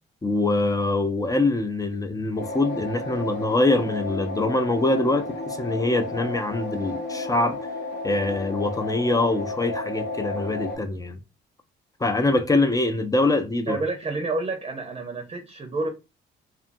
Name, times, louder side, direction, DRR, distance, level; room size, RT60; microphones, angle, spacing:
voice 1, 0.2-7.6 8.0-11.2 12.0-13.8, left 2 dB, 15° left, 0.4 m, -24 dB
sound 1, 2.4-10.8, left 2 dB, 60° left, 0.8 m, -33 dB
voice 2, 13.7-15.9, right 3 dB, 30° right, 0.7 m, -29 dB
2.5 x 2.5 x 2.5 m
cardioid pair, 90°, 20 cm